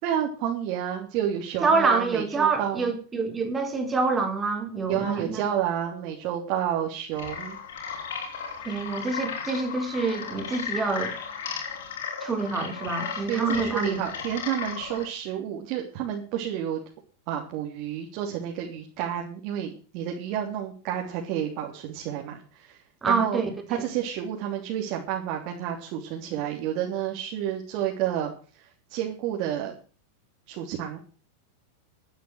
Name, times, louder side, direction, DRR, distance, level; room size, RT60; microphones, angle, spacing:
voice 1, 0.0-2.9 4.9-7.6 13.3-16.8 17.3-22.8 23.0-23.4 23.7-28.3 28.9-29.7 30.5-31.0, right 10 dB, 50° right, -1 dB, 3.4 m, -30 dB
voice 2, 1.6-5.4 8.6-11.1 12.2-14.0 23.0-23.5, right 4 dB, 15° right, 5 dB, 4.2 m, -26 dB
sound 1, 7.1-15.1, left 6 dB, 80° left, 5.2 m, -35 dB
13.5 x 9.3 x 6.5 m, 0.39 s
hypercardioid pair, 125°, 0 cm